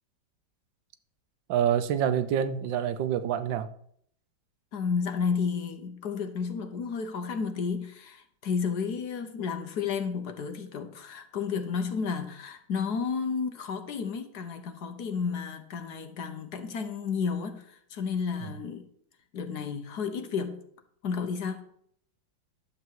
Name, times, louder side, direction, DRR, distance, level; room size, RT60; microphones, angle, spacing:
voice 1, 1.5-3.7 18.4-18.5, right 9 dB, 75° right, 12 dB, 1.3 m, -27 dB
voice 2, 4.7-18.9 19.3-20.6 21.0-21.6, left 6 dB, 60° left, 7 dB, 1.3 m, -32 dB
11.5 x 7.3 x 4.6 m, 0.66 s
omnidirectional pair, 2.1 m